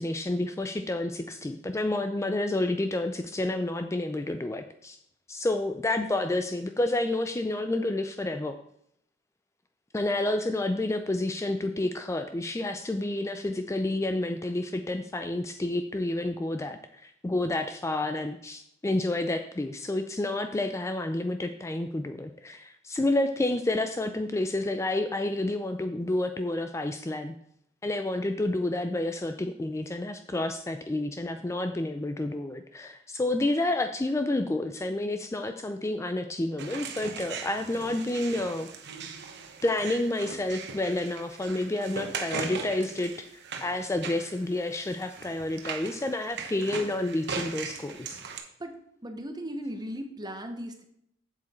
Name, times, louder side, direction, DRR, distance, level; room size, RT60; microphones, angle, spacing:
voice 1, 0.0-5.0 5.3-8.6 9.9-27.4 27.8-38.7 39.6-43.1 43.6-48.2, left 2 dB, 15° left, 8 dB, 0.4 m, -29 dB
sound 1, 36.6-48.4, right 5 dB, 60° right, 1.2 m, -39 dB
voice 2, 48.6-50.8, equal, 20° right, 6 dB, 1.1 m, -37 dB
7.7 x 7.5 x 4.3 m, 0.72 s
head